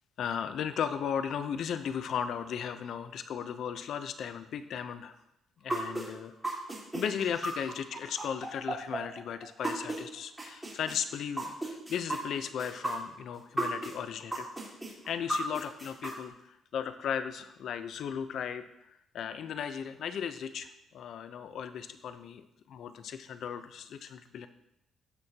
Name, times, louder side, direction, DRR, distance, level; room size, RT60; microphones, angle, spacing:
voice 1, 0.2-5.2 5.6-6.6 6.9-14.5 15.1-24.5, left 8 dB, 70° left, 11 dB, 0.6 m, -36 dB
sound 1, 5.7-10.0 10.4-13.9 14.3-16.1, right 1 dB, 15° right, 3.7 m, -34 dB
15.5 x 6.1 x 2.9 m, 0.85 s
cardioid pair, 90°, 0 cm